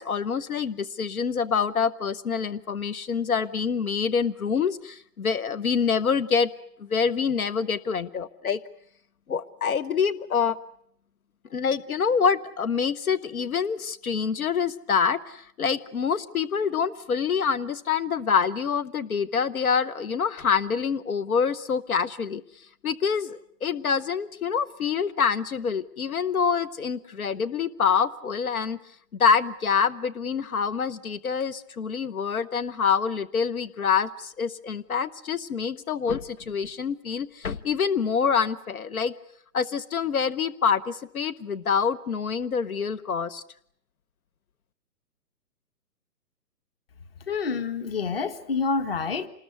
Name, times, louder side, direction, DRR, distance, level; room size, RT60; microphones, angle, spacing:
voice 1, 0.0-6.5 6.8-8.6 9.3-10.6 11.5-22.4 22.8-28.8 29.2-39.1 39.5-43.4, left 6 dB, 60° left, 16 dB, 1.1 m, -26 dB
voice 2, 47.3-49.3, left 5 dB, 35° left, 13 dB, 1.6 m, -27 dB
27.0 x 20.0 x 9.4 m, 0.68 s
hypercardioid pair, 175°, 48 cm